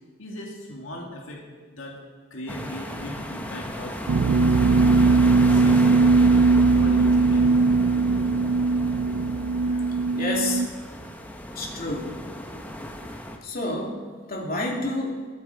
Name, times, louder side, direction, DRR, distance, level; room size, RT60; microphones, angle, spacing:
voice 1, 0.2-1.4 1.7-2.0 2.3-4.0 4.5-5.2 5.4-6.0 6.7-7.7, equal, 85° left, -1 dB, 2.1 m, -38 dB
sound 1, 2.5-13.4, left 1 dB, 10° left, 1.0 m, -35 dB
sound 2, 4.1-10.7, right 4 dB, 75° right, 0.4 m, -19 dB
voice 2, 10.1-10.7 11.5-12.1 13.4-14.0 14.3-15.2, left 2 dB, 50° left, -1 dB, 2.7 m, -29 dB
21.5 x 8.8 x 4.8 m, 1.5 s
head